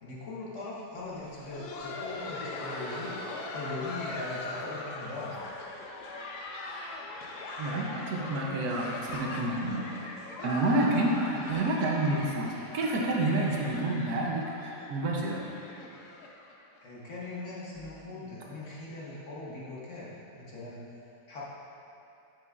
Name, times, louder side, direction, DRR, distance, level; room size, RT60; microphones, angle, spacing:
voice 1, 0.0-3.1 3.5-5.4 16.8-20.8 21.3-21.4, left 2 dB, 50° left, -7 dB, 1.3 m, -40 dB
Laughter, 1.1-16.8 17.1-17.2 17.7-17.9 18.4-18.6 19.7-19.8, left 2 dB, 80° left, 1.2 m, -40 dB
voice 2, 7.6-9.8 10.4-15.5, right 2 dB, 70° right, -1 dB, 1.2 m, -29 dB
7.4 x 6.8 x 2.4 m, 2.8 s
omnidirectional pair, 1.7 m